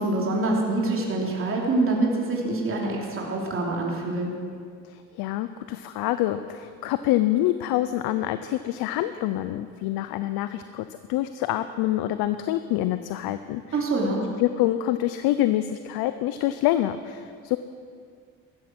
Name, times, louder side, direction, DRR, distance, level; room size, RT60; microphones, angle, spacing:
voice 1, 0.0-4.4 13.7-14.2, right 2 dB, 35° right, -2 dB, 3.2 m, -25 dB
voice 2, 4.9-13.8 14.4-17.6, left 14 dB, 85° left, 11 dB, 0.7 m, -26 dB
15.5 x 14.0 x 6.1 m, 2.2 s
cardioid pair, 110°, 36 cm